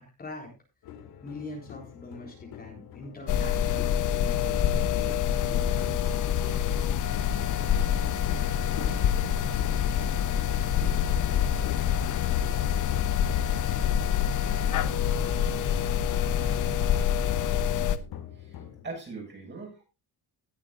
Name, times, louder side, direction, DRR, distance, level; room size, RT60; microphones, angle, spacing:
voice 1, 0.2-0.5 1.2-6.6, left 2 dB, 25° left, 0 dB, 3.9 m, -43 dB
sound 1, 0.8-18.8, left 9 dB, 70° left, 2.2 m, -46 dB
sound 2, 3.3-18.0, left 9 dB, 50° left, 1.0 m, -26 dB
voice 2, 18.3-19.8, right 3 dB, 30° right, 0 dB, 6.9 m, -43 dB
18.0 x 9.4 x 2.6 m, 0.27 s
cardioid pair, 140°, 38 cm